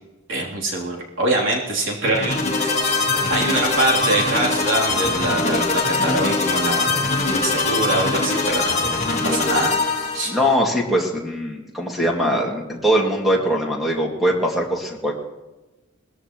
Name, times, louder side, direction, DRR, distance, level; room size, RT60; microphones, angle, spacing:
voice 1, 0.3-6.9 7.3-8.8 9.2-9.7 10.1-10.3, right 1 dB, 70° right, -3 dB, 3.2 m, -24 dB
sound 1, 2.0-10.5, left 3 dB, 35° left, 1.7 m, -22 dB
voice 2, 10.3-15.1, equal, ahead, -2 dB, 2.2 m, -21 dB
20.5 x 14.5 x 3.1 m, 1.1 s
head